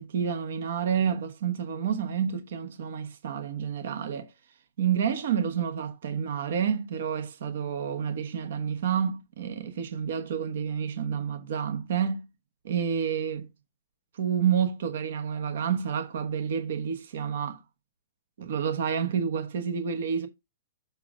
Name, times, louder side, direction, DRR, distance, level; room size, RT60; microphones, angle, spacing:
voice 1, 0.0-4.3 4.8-12.2 12.6-13.5 14.2-17.6 18.4-20.3, right 7 dB, 70° right, 1.2 m, -29 dB
7.2 x 5.2 x 3.6 m
hypercardioid pair, 120°, 0 cm